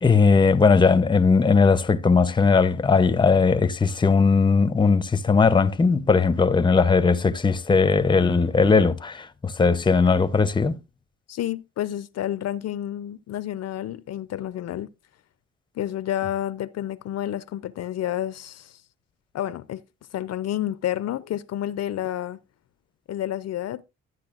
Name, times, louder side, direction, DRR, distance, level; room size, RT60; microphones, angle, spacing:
voice 1, 0.0-10.8, left 4 dB, 15° left, 0.6 m, -19 dB
voice 2, 11.3-14.9 15.8-18.8 19.3-19.8 20.1-22.4 23.1-23.8, left 12 dB, 60° left, 0.5 m, -30 dB
12.0 x 9.5 x 2.4 m
cardioid pair, 90°, 30 cm